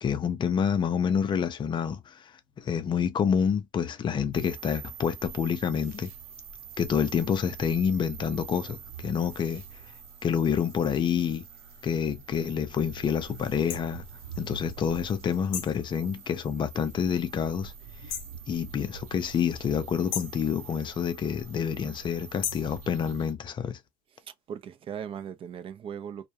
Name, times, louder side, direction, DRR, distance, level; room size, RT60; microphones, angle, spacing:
voice 1, 0.0-2.2 2.6-6.1 6.8-9.6 10.2-11.4 11.8-14.0 14.4-17.7 18.1-18.2 18.5-23.8, left 7 dB, 25° left, 0.5 m, -28 dB
sound 1, 4.3-23.3, right 7 dB, 55° right, 0.8 m, -45 dB
sound 2, 13.7-13.8 15.5-15.8 18.1-18.4 20.1-20.4 22.4-22.7, left 9 dB, 60° left, 0.7 m, -34 dB
voice 2, 24.3-26.3, right 8 dB, 30° right, 0.5 m, -38 dB
2.2 x 2.2 x 2.7 m
supercardioid pair, 105°, 18 cm